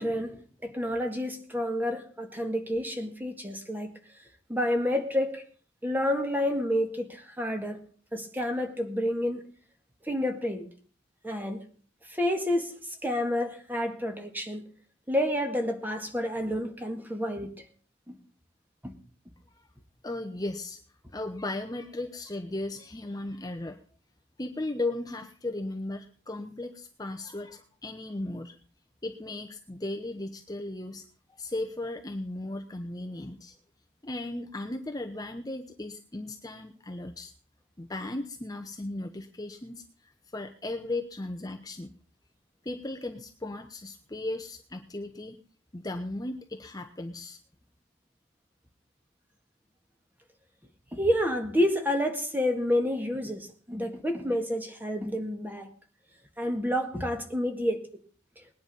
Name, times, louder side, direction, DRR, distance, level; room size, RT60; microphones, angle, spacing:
voice 1, 0.0-3.9 4.5-5.4 5.8-7.8 8.1-9.4 10.1-10.7 11.2-11.6 12.1-14.6 15.1-17.5 18.1-18.2 18.8-18.9 50.9-55.7 56.4-57.8, left 1 dB, 10° right, 1.9 m, -29 dB
voice 2, 20.0-20.8 21.1-23.8 24.4-28.6 29.0-33.6 34.0-37.3 37.8-41.9 42.6-45.4 45.7-47.4, left 2 dB, 20° left, 0.9 m, -36 dB
20.0 x 10.0 x 5.4 m
head